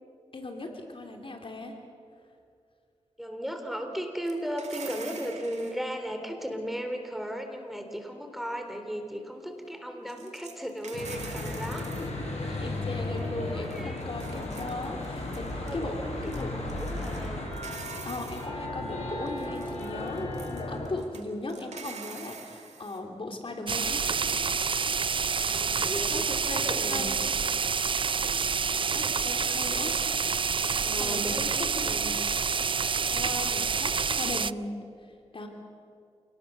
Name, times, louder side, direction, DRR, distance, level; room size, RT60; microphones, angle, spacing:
voice 1, 0.3-1.8 12.6-16.0 16.4-16.5 18.0-24.1 26.1-27.4 28.9-30.0 30.9-32.0 32.8-34.7 35.0-35.5, left 2 dB, 50° left, 3 dB, 3.2 m, -38 dB
voice 2, 3.2-11.9 12.4-14.1 15.6-15.9 16.2-17.5 25.4-27.1 30.7-32.2, equal, ahead, 5 dB, 3.8 m, -36 dB
sound 1, 4.2-5.8 10.1-12.1 12.7-12.8 13.0-13.4 13.6-15.8 16.2-17.3 17.5-18.5 19.3-23.0, right 5 dB, 85° right, 2.3 m, -46 dB
Church bell / Traffic noise roadway noise, 10.9-20.9, left 2 dB, 75° left, 6.0 m, -35 dB
sound 2, 23.7-34.5, right 5 dB, 50° right, 0.5 m, -28 dB
27.5 x 19.0 x 6.9 m, 2.3 s
cardioid pair, 50°, 11 cm